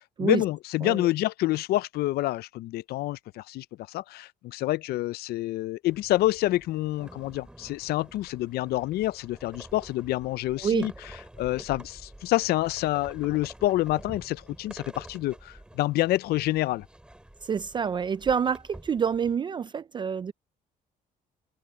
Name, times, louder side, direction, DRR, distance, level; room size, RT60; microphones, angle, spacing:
voice 1, 0.2-10.9 11.4-16.9, left 16 dB, 75° left, 0.4 m, -27 dB
sound 1, 5.8-19.3, right 1 dB, 5° right, 3.6 m, -48 dB
voice 2, 17.4-20.3, right 7 dB, 30° right, 0.4 m, -27 dB
cardioid pair, 130°, 16 cm